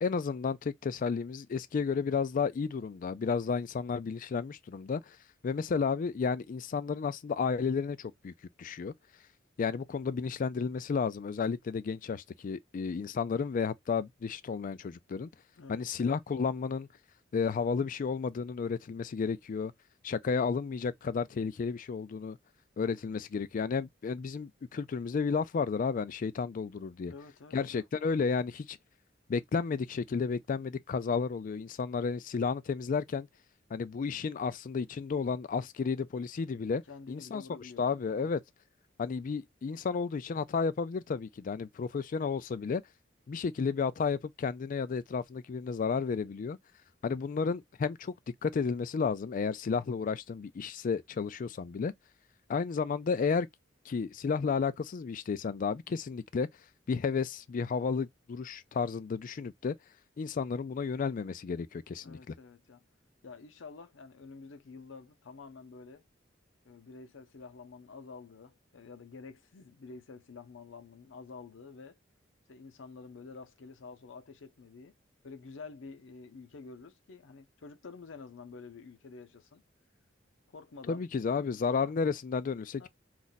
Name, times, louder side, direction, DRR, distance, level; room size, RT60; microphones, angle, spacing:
voice 1, 0.0-5.2 5.4-8.9 9.6-15.3 15.7-16.9 17.3-19.7 20.0-22.4 22.8-27.1 27.5-28.8 29.3-33.3 33.7-36.8 37.1-37.4 37.8-38.4 39.0-42.8 43.3-46.6 47.0-48.1 48.4-51.9 52.5-53.5 53.9-56.5 56.9-59.7 60.2-62.3 80.9-82.9, left 5 dB, 45° left, 0.3 m, -32 dB
voice 2, 27.0-27.9 36.9-38.3 62.0-62.8 63.2-66.1 66.6-72.0 72.5-74.9 75.2-79.6 80.5-81.1 81.3-81.9 82.8-82.9, left 4 dB, 85° left, 0.6 m, -49 dB
2.5 x 2.2 x 3.9 m
head